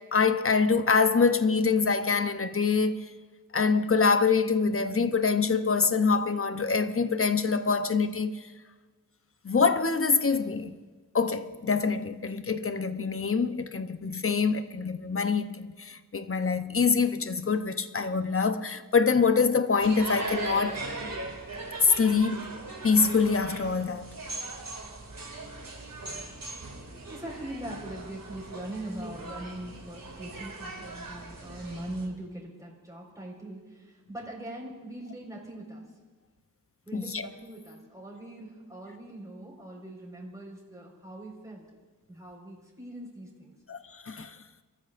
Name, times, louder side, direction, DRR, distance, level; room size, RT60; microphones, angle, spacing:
voice 1, 0.0-3.1 3.5-8.5 9.4-10.7 11.1-20.8 21.8-22.5 22.8-24.2 36.9-37.3 43.7-44.4, left 5 dB, 40° left, 0.8 m, -25 dB
sound 1, 19.8-32.1, right 2 dB, 75° right, 2.6 m, -39 dB
voice 2, 27.1-35.8 36.8-41.7 42.1-43.5, right 1 dB, 10° right, 4.7 m, -41 dB
29.5 x 14.0 x 2.6 m
wide cardioid pair, 55°, 34 cm